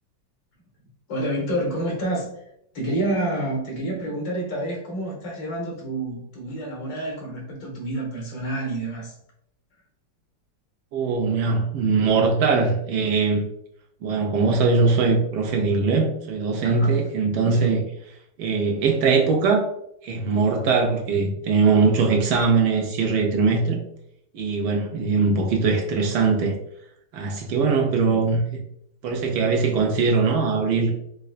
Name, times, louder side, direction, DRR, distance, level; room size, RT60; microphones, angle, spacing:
voice 1, 1.1-2.4 2.7-9.1 16.6-17.0 17.4-17.7, right 1 dB, 75° left, -2 dB, 1.9 m, -28 dB
voice 2, 10.9-13.4 14.0-17.8 18.1-19.7 20.0-23.8 24.3-26.5 27.1-28.6 29.0-30.9, right 4 dB, 70° right, 1 dB, 1.1 m, -21 dB
4.8 x 2.1 x 2.4 m, 0.74 s
omnidirectional pair, 2.0 m